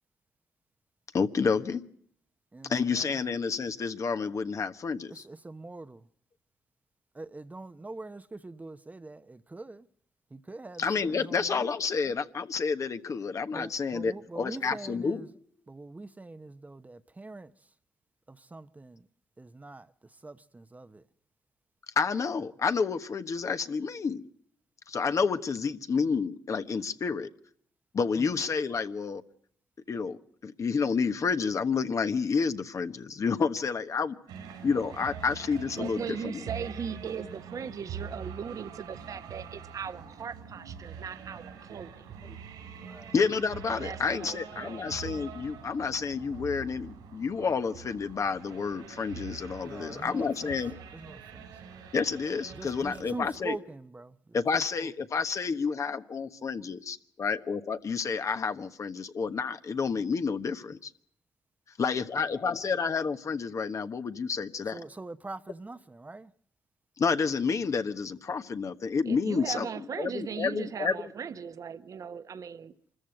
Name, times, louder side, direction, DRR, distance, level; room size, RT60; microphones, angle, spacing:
voice 1, 1.1-1.8 2.7-5.2 10.8-15.2 22.0-24.2 24.9-27.3 27.9-29.2 29.9-30.2 30.4-34.2 34.6-36.4 43.1-50.8 51.9-53.6 54.3-60.9 61.8-64.8 67.0-69.7 70.0-70.9, left 5 dB, 55° left, 1.2 m, -29 dB
voice 2, 2.5-3.2 5.1-6.0 7.1-9.8 10.3-11.6 13.5-15.2 15.7-17.5 18.3-19.0 19.4-19.9 20.2-21.0 28.1-28.3 42.8-43.1 49.6-50.5 50.9-51.4 52.6-54.1 54.8-54.9 64.7-66.3, right 2 dB, 25° right, 0.9 m, -43 dB
sound 1, 34.3-53.4, right 7 dB, 85° right, 4.9 m, -44 dB
voice 3, 35.8-42.0 43.7-44.9 69.0-72.7, right 7 dB, 60° right, 1.3 m, -38 dB
25.0 x 14.5 x 7.8 m
supercardioid pair, 50°, 7 cm